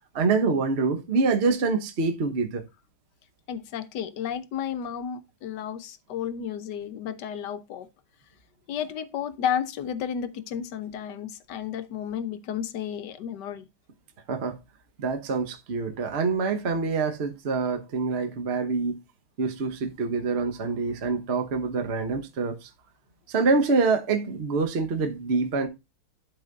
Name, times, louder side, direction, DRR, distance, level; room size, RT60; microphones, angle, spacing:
voice 1, 0.1-2.6 14.3-14.6 15.0-19.0 19.4-22.7 23.3-25.7, right 4 dB, 40° right, 1.1 m, -26 dB
voice 2, 3.5-7.9 8.7-13.7, left 8 dB, 65° left, 1.2 m, -32 dB
12.0 x 4.1 x 3.9 m
omnidirectional pair, 2.3 m